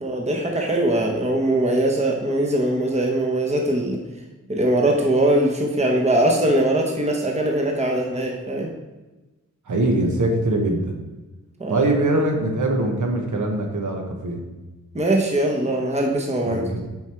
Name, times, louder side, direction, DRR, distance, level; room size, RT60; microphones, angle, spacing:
voice 1, 0.0-4.0 4.5-8.7 11.6-11.9 14.9-16.6, right 1 dB, 20° right, 1 dB, 1.0 m, -21 dB
voice 2, 9.7-10.9 11.7-14.4 16.4-16.8, right 2 dB, 65° right, 1 dB, 1.3 m, -22 dB
7.0 x 4.9 x 4.5 m, 1.1 s
wide cardioid pair, 130°, 32 cm